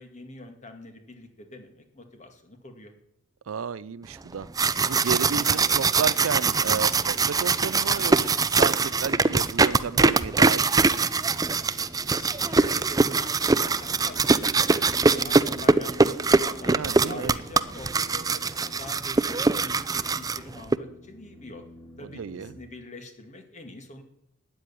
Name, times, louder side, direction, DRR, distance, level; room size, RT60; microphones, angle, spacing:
voice 1, 0.0-2.9 12.1-16.7 17.1-21.6 22.0-24.0, left 1 dB, 35° left, 2.3 m, -44 dB
voice 2, 3.5-4.5 4.9-11.2 16.6-17.3 22.0-22.5, right 6 dB, 75° right, 0.5 m, -32 dB
sound 1, 3.9-22.6, right 1 dB, 10° left, 3.4 m, -49 dB
sound 2, 4.3-20.8, right 4 dB, 20° right, 0.5 m, -23 dB
13.0 x 9.4 x 10.0 m
head